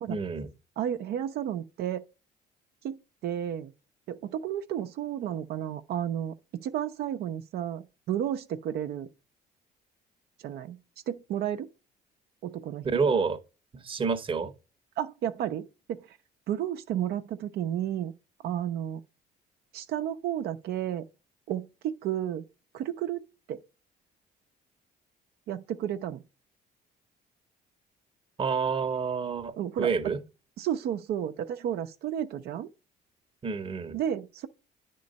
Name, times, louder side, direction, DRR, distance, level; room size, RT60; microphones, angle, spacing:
voice 1, 0.1-0.5 12.8-13.4 13.7-14.5 28.4-30.2 33.4-34.0, right 5 dB, 30° right, 0.9 m, -28 dB
voice 2, 0.8-2.0 2.8-3.0 3.2-3.7 4.1-6.3 6.6-9.1 10.4-10.8 11.1-11.7 12.4-12.8 15.0-16.2 16.5-18.1 18.4-19.0 19.7-21.1 21.5-22.4 22.7-23.2 23.5-23.6 25.5-26.2 29.6-29.9 30.6-32.7 33.9-34.5, right 10 dB, 70° right, 0.7 m, -32 dB
9.6 x 3.8 x 5.2 m
cardioid pair, 110°, 17 cm